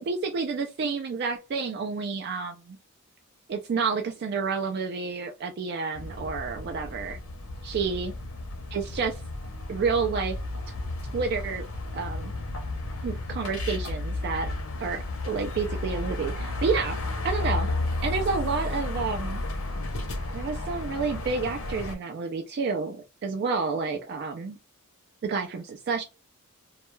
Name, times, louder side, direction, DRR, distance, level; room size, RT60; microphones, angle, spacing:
voice 1, 0.0-2.8 3.5-7.2 7.6-8.1 8.7-9.2 9.7-10.4 10.7-10.8 11.1-11.6 11.9-12.3 13.0-14.5 14.8-15.0 15.2-17.0 17.2-17.7 18.0-19.4 20.3-24.6 25.2-26.0, right 5 dB, 50° right, 0.3 m, -29 dB
sound 1, 5.9-21.9, left 2 dB, 70° left, 0.7 m, -33 dB
2.2 x 2.1 x 3.0 m
head